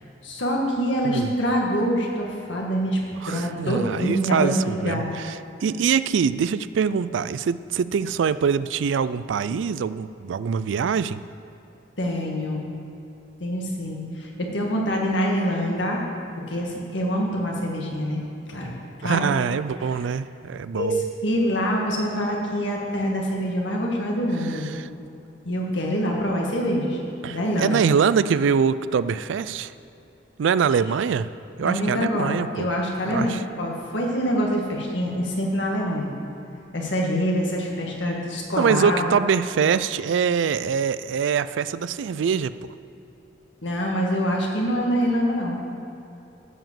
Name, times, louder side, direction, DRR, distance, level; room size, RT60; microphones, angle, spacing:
voice 1, 0.2-3.0 3.3-5.1 12.0-12.8 13.4-16.0 16.5-18.7 19.0-19.3 19.8-19.9 20.7-21.0 21.2-24.7 25.5-27.0 27.3-27.8 31.6-36.1 36.7-39.2 43.6-45.6, equal, 75° left, -1 dB, 1.9 m, -25 dB
voice 2, 3.2-11.2 19.0-21.0 24.4-24.9 27.2-29.7 30.4-31.3 31.6-32.7 33.1-33.4 38.6-42.7, right 6 dB, 80° right, 15 dB, 0.3 m, -24 dB
13.0 x 5.0 x 7.5 m, 2.8 s
head